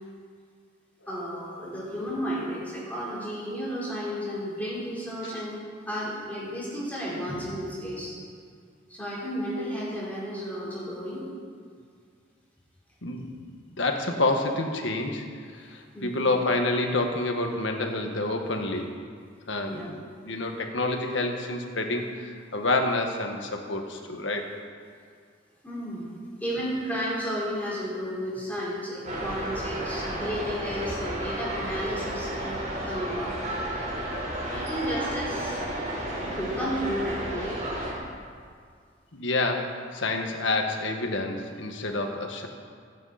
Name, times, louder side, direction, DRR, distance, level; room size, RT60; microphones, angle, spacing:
voice 1, 1.1-5.6 5.9-8.1 8.9-11.2 15.9-16.3 19.6-19.9 25.6-32.6 32.8-33.4 34.5-35.6 36.2-37.7, equal, 10° left, -7 dB, 4.1 m, -33 dB
voice 2, 13.0-13.4 13.8-15.2 15.5-18.9 19.5-20.0 20.2-24.5 39.1-42.5, left 2 dB, 85° left, 3 dB, 1.6 m, -28 dB
sound 1, 29.0-37.9, right 1 dB, 40° right, 4.5 m, -32 dB
26.5 x 9.3 x 4.3 m, 2.1 s
head